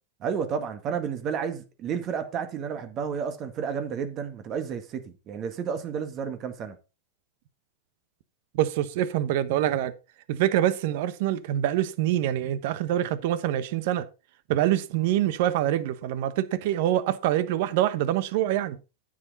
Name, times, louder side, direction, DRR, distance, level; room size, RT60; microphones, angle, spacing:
voice 1, 0.2-6.8, right 7 dB, 40° right, 1.8 m, -31 dB
voice 2, 8.5-9.9 10.3-14.1 14.5-18.8, right 12 dB, 65° right, 1.0 m, -25 dB
9.6 x 7.8 x 4.0 m
hypercardioid pair, 100°, 0 cm